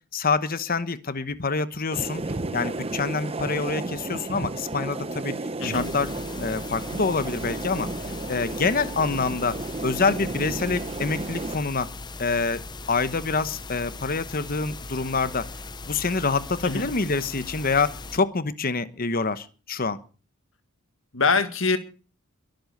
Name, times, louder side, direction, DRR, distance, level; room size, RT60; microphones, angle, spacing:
voice 1, 0.1-2.2 2.5-5.3 5.6-6.1 6.4-7.9 8.3-11.9 12.2-12.6 12.9-15.5 15.9-20.0, left 4 dB, 40° left, 13 dB, 1.1 m, -26 dB
sound 1, 1.9-11.6, right 2 dB, 25° right, 0.9 m, -33 dB
sound 2, 5.7-18.2, left 3 dB, 20° left, 0.7 m, -39 dB
voice 2, 21.1-21.8, left 4 dB, 65° left, 10 dB, 1.9 m, -23 dB
22.5 x 7.9 x 6.6 m, 0.38 s
head